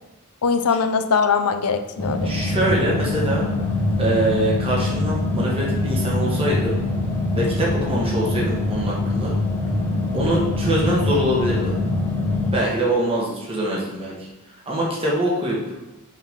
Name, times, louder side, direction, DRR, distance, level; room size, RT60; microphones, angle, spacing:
voice 1, 0.4-2.7, left 5 dB, 85° left, 9 dB, 0.6 m, -22 dB
sound 1, 2.0-12.5, left 2 dB, 10° left, 1.1 m, -23 dB
voice 2, 2.2-3.5 4.0-6.7 7.4-9.4 10.1-11.7 12.5-14.2 14.7-15.6, right 1 dB, 25° right, -4 dB, 1.3 m, -23 dB
5.6 x 5.4 x 3.6 m, 1.1 s
head